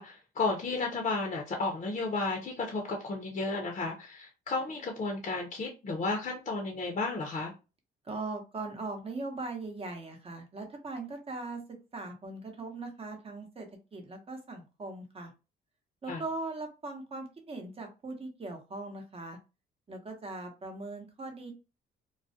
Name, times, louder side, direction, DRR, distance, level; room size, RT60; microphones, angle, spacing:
voice 1, 0.0-7.5 16.1-16.2, left 3 dB, 35° left, 0.6 m, -33 dB
voice 2, 8.0-11.6 11.9-13.7 13.9-15.3 16.0-19.4 19.9-21.5, right 3 dB, 30° right, 0.8 m, -40 dB
2.3 x 2.1 x 2.6 m
cardioid pair, 90°, 20 cm